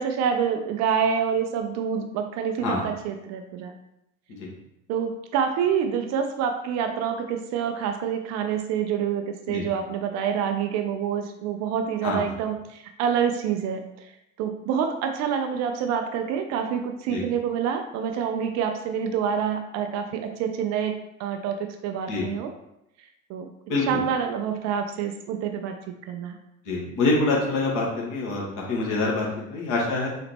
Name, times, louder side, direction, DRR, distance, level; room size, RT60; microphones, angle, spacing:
voice 1, 0.0-3.7 4.9-14.1 14.4-22.5 23.3-23.5 23.9-25.8 26.1-26.4, right 7 dB, 45° right, 5 dB, 0.5 m, -27 dB
voice 2, 23.7-24.0 26.6-30.1, left 3 dB, 50° left, -2 dB, 1.4 m, -26 dB
4.0 x 2.8 x 3.4 m, 0.82 s
figure-of-eight pair, 65°, 40 cm